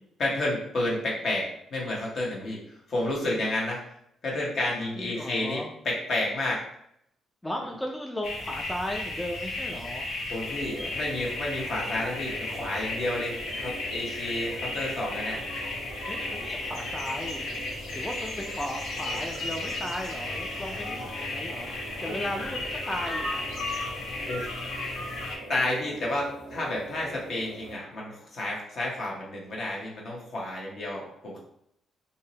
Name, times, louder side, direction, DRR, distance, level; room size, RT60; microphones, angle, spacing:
voice 1, 0.2-2.6 2.9-3.8 4.2-6.6 10.3-15.4 22.0-22.2 24.2-24.5 25.5-31.4, left 1 dB, 60° left, -3 dB, 0.9 m, -30 dB
voice 2, 4.9-5.7 7.4-10.1 16.1-21.7 22.0-23.5, left 1 dB, 10° left, 1 dB, 0.3 m, -36 dB
sound 1, 8.2-25.4, left 2 dB, 80° left, 0.6 m, -34 dB
sound 2, 10.4-27.8, right 2 dB, 90° right, 0.6 m, -44 dB
2.6 x 2.0 x 2.7 m, 0.73 s
supercardioid pair, 70°, 0 cm